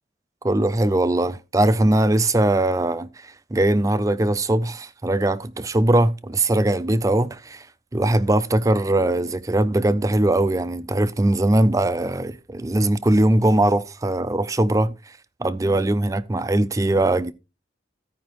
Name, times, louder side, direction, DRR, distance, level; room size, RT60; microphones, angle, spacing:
voice 1, 0.4-7.7 7.9-14.9 15.4-17.3, right 1 dB, 20° right, 0.4 m, -20 dB
15.5 x 5.2 x 3.0 m
head